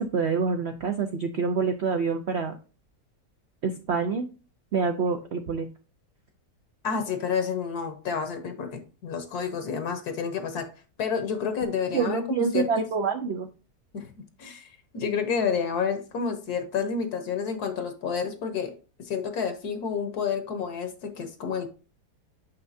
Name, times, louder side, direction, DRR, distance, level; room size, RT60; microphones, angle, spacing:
voice 1, 0.0-2.5 3.6-4.3 4.7-5.7 11.9-13.5, right 5 dB, 75° right, 6 dB, 0.6 m, -26 dB
voice 2, 6.8-10.7 11.0-12.9 13.9-14.1 14.4-21.7, left 6 dB, 65° left, 8 dB, 1.3 m, -30 dB
6.5 x 5.7 x 2.6 m, 0.34 s
omnidirectional pair, 1.9 m